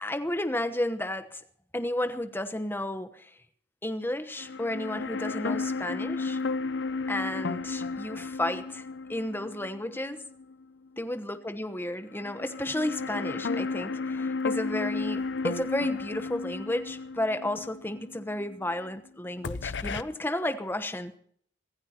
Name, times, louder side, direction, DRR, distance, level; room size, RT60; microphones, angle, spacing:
voice 1, 0.0-1.4 1.7-3.3 3.8-6.4 7.1-8.8 9.1-10.2 11.0-21.2, left 1 dB, 10° left, 1.1 m, -32 dB
sound 1, 4.4-10.6 11.0-11.1 12.1-19.1 19.4-20.0, left 4 dB, 70° left, 0.6 m, -33 dB
25.0 x 15.5 x 2.9 m
head